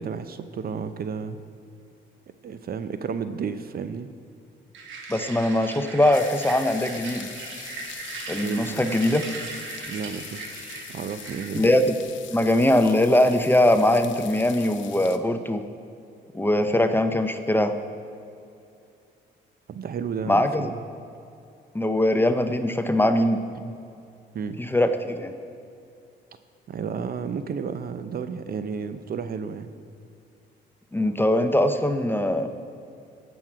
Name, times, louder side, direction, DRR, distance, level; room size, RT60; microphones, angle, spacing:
voice 1, 0.0-1.4 2.4-4.1 8.4-8.9 9.9-11.7 19.7-20.8 23.6-23.7 24.3-24.6 26.7-29.7, right 6 dB, 50° right, 11 dB, 0.6 m, -32 dB
sound 1, 4.7-11.9, right 4 dB, 80° right, 1.4 m, -38 dB
voice 2, 5.1-7.3 8.3-9.2 11.5-11.9 12.3-15.6 16.3-17.7 20.3-20.7 21.7-23.4 24.6-25.3 30.9-32.5, left 1 dB, 10° left, 8 dB, 0.7 m, -21 dB
sound 2, 6.1-15.2, left 10 dB, 75° left, 0.7 m, -42 dB
17.5 x 6.1 x 5.0 m, 2.6 s
cardioid pair, 90°, 20 cm